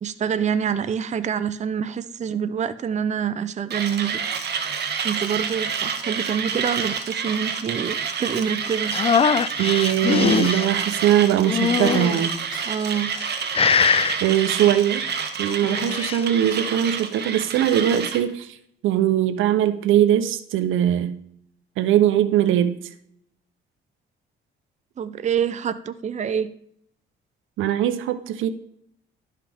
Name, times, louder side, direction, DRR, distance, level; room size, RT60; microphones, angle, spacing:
voice 1, 0.0-4.2 5.0-9.0 12.7-13.2 25.0-26.5, right 7 dB, 35° right, 12 dB, 0.5 m, -26 dB
Mechanisms, 3.7-18.2, right 6 dB, 55° right, 1.2 m, -28 dB
sound 1, 8.9-10.7 11.5-12.3 13.0-13.3 13.5-14.2 15.5-16.2, left 6 dB, 30° left, 0.4 m, -21 dB
voice 2, 9.6-12.3 14.2-15.1 15.4-18.5 18.8-21.2 21.8-22.8 27.6-28.5, right 11 dB, 85° right, 11 dB, 0.7 m, -21 dB
Sneeze, 10.2-11.8 12.2-12.8 13.1-14.6, left 5 dB, 80° left, 1.7 m, -45 dB
11.5 x 5.7 x 3.4 m, 0.69 s
cardioid pair, 90°, 20 cm